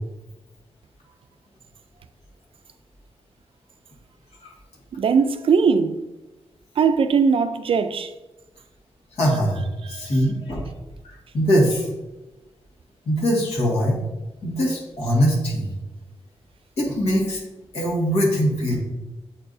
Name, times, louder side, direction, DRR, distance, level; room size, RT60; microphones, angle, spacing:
voice 1, 5.0-6.0 6.8-8.1 9.8-10.1, right 5 dB, 60° right, 0.4 m, -20 dB
voice 2, 9.2-9.6 9.9-10.7 11.3-11.9 13.1-14.0 14.4-15.7 16.8-17.4 17.7-18.8, equal, 70° left, 1.9 m, -21 dB
8.6 x 4.6 x 2.6 m
wide cardioid pair, 170°, 11 cm